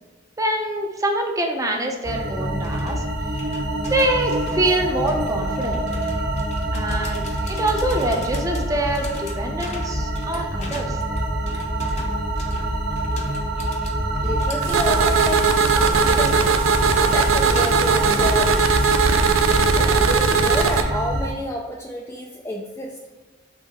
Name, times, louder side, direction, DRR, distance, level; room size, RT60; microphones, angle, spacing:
voice 1, 0.4-3.0 3.9-5.8 6.7-11.0, right 1 dB, 15° right, 2 dB, 0.8 m, -25 dB
sound 1, 2.0-21.3, right 1 dB, 55° right, 1.5 m, -25 dB
sound 2, 2.6-18.1, left 3 dB, 35° left, 0.8 m, -41 dB
voice 2, 14.2-16.4 17.1-18.6 19.7-23.0, left 1 dB, 15° left, -1 dB, 0.4 m, -29 dB
sound 3, 14.6-20.8, right 5 dB, 85° right, 0.5 m, -19 dB
5.6 x 3.9 x 4.3 m, 1.3 s
head